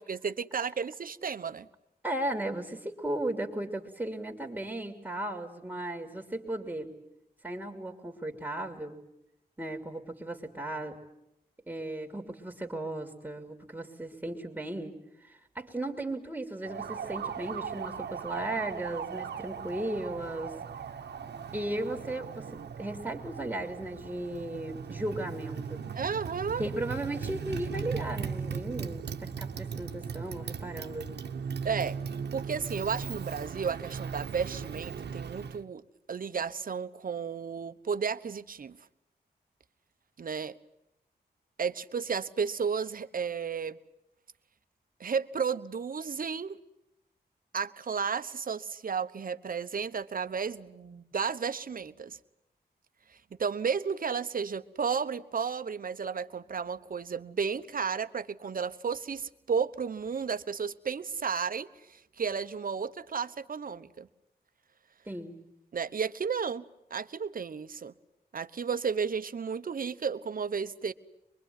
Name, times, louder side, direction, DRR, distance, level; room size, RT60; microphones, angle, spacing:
voice 1, 0.1-1.7 25.9-26.6 31.6-32.0 32.3-35.8 36.1-38.8 40.2-40.5 41.6-43.8 45.0-46.6 47.5-52.2 53.4-64.1 65.7-66.6 66.9-67.9 68.3-70.9, right 6 dB, 55° right, 1.1 m, -33 dB
voice 2, 2.0-6.9 7.4-9.0 9.6-11.0 11.7-15.0 15.2-20.6 21.5-25.8 26.6-31.1 65.1-65.3, right 1 dB, 10° right, 2.8 m, -36 dB
Motorcycle, 16.6-35.6, right 6 dB, 80° right, 1.2 m, -38 dB
23.5 x 23.0 x 9.4 m
cardioid pair, 75°, 17 cm